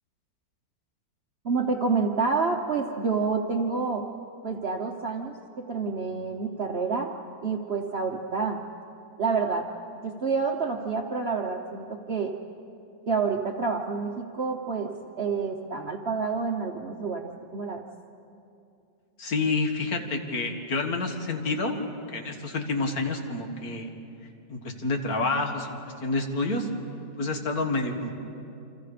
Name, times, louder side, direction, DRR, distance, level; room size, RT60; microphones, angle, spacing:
voice 1, 1.4-4.1 4.4-7.1 7.4-8.6 9.2-9.7 10.0-12.3 13.1-17.8, right 4 dB, 45° right, 2 dB, 1.1 m, -28 dB
voice 2, 19.2-23.9 24.5-26.7 27.2-28.1, left 3 dB, 60° left, 4 dB, 2.2 m, -29 dB
29.0 x 26.0 x 5.0 m, 2.7 s
omnidirectional pair, 1.8 m